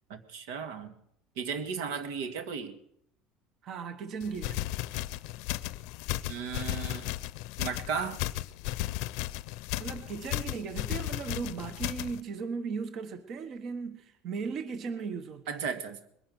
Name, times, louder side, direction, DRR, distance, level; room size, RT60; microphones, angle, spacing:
voice 1, 0.1-0.9 1.4-2.8 6.3-7.1 7.6-8.2 15.5-16.0, right 6 dB, 85° right, 1.8 m, -35 dB
voice 2, 3.6-4.7 8.9-9.0 9.8-15.7, right 5 dB, 40° right, 1.1 m, -37 dB
sound 1, 4.2-12.2, left 17 dB, 70° left, 0.6 m, -35 dB
21.0 x 10.5 x 6.3 m
cardioid pair, 150°, 0 cm